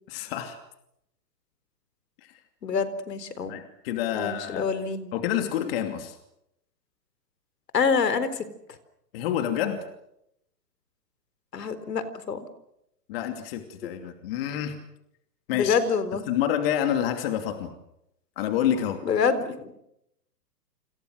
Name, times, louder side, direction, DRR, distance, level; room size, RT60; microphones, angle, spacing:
voice 1, 0.1-0.6 2.2-2.3 3.5-4.7 5.1-6.2 9.1-9.8 13.1-14.8 15.5-15.8 16.3-17.7 18.4-19.0, left 10 dB, 35° left, 6 dB, 2.8 m, -28 dB
voice 2, 2.6-3.5 4.1-5.1 5.6-5.7 7.7-8.4 11.5-12.5 15.5-16.3 19.0-19.7, left 5 dB, 75° left, 13 dB, 4.2 m, -26 dB
29.0 x 27.0 x 6.4 m, 0.82 s
hypercardioid pair, 150°, 49 cm